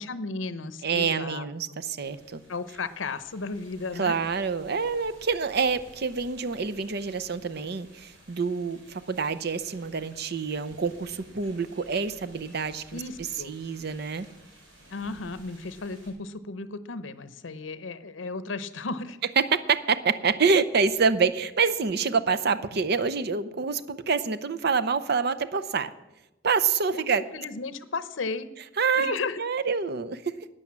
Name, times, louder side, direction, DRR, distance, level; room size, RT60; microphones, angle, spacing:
voice 1, 0.0-1.5 2.5-4.2 12.9-13.5 14.9-19.2 26.9-28.5 29.0-29.4, left 4 dB, 85° left, 13 dB, 0.7 m, -34 dB
voice 2, 0.8-2.4 4.0-13.0 13.5-14.3 19.4-25.9 26.4-27.2 28.8-30.3, right 5 dB, 60° right, 12 dB, 0.7 m, -26 dB
sound 1, 2.0-16.1, right 1 dB, 85° right, 4.4 m, -54 dB
12.0 x 9.2 x 7.4 m, 0.99 s
head